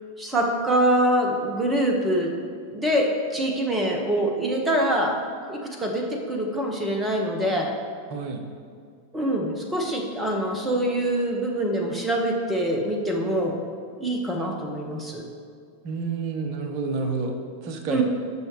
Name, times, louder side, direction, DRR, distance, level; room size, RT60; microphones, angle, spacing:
voice 1, 0.2-2.3 2.7-5.1 5.5-7.7 9.1-13.5 14.0-15.2 17.9-18.0, right 1 dB, 10° right, 1 dB, 1.5 m, -24 dB
voice 2, 8.1-8.5 15.8-18.0, right 4 dB, 45° right, 5 dB, 1.2 m, -29 dB
17.5 x 6.3 x 3.3 m, 2.3 s
figure-of-eight pair, 90°, 0 cm